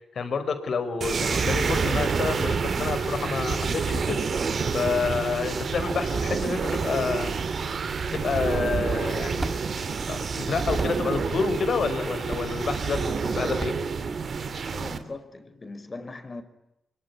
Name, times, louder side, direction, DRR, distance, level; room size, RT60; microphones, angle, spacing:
voice 1, 0.1-4.3 4.7-7.4 8.1-9.6 9.9-13.7, left 5 dB, 65° left, 9 dB, 5.4 m, -29 dB
sound 1, 1.0-15.0, right 5 dB, 55° right, 3.1 m, -28 dB
sound 2, 9.4-14.8, right 2 dB, 25° right, 1.7 m, -38 dB
voice 2, 14.7-16.4, left 3 dB, 35° left, 10 dB, 5.2 m, -39 dB
25.0 x 24.0 x 9.9 m, 0.86 s
cardioid pair, 65°, 0 cm